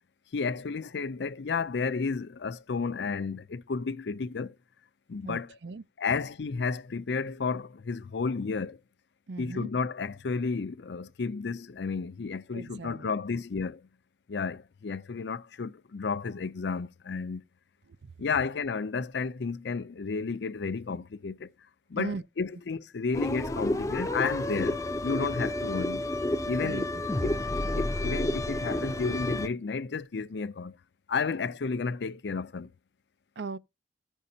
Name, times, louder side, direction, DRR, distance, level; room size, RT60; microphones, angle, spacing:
voice 1, 0.3-4.5 5.1-5.5 6.0-8.8 9.4-13.8 14.3-17.4 18.2-21.5 21.9-26.1 26.5-26.9 27.2-27.3 27.7-30.8 31.1-32.7, left 4 dB, 70° left, 0.5 m, -32 dB
voice 2, 5.2-5.8 9.3-9.7 12.5-13.4 17.9-18.1 22.0-22.2 26.6-26.9 33.4-33.6, right 4 dB, 70° right, 0.6 m, -38 dB
sound 1, 23.1-29.5, left 1 dB, 20° left, 0.5 m, -30 dB
15.0 x 5.4 x 2.8 m
head